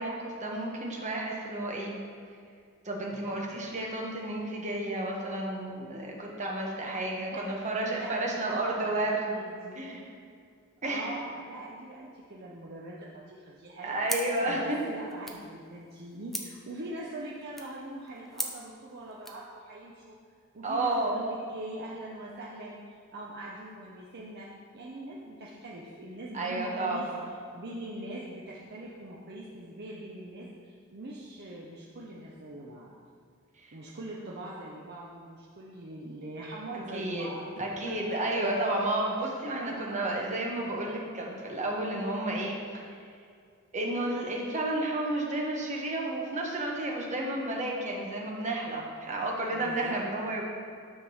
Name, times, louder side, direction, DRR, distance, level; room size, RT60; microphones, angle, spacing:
voice 1, 0.0-2.0 2.8-9.3 9.8-10.0 10.8-11.1 13.8-14.8 20.6-21.2 26.3-27.2 33.6-33.7 36.9-37.3 37.6-42.9 43.7-50.4, right 1 dB, 35° right, -2 dB, 1.2 m, -31 dB
voice 2, 7.2-7.5 7.9-9.9 10.8-20.2 20.5-27.1 27.5-32.9 33.7-37.9 39.2-39.3 39.6-40.0 49.5-50.0, right 1 dB, 50° right, -4 dB, 0.8 m, -42 dB
sound 1, 14.0-19.5, equal, ahead, 0.6 m, -41 dB
9.6 x 3.7 x 6.3 m, 2.2 s
head